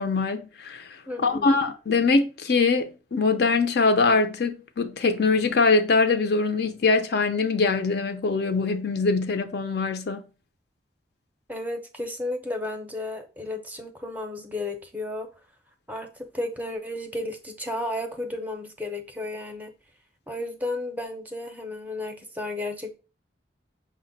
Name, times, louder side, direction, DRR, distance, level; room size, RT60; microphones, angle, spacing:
voice 1, 0.0-10.2, left 4 dB, 65° left, 0.5 m, -23 dB
voice 2, 1.1-1.6 11.5-15.3 15.9-19.7 20.3-23.0, left 2 dB, 10° right, 0.5 m, -33 dB
5.8 x 2.1 x 3.8 m
head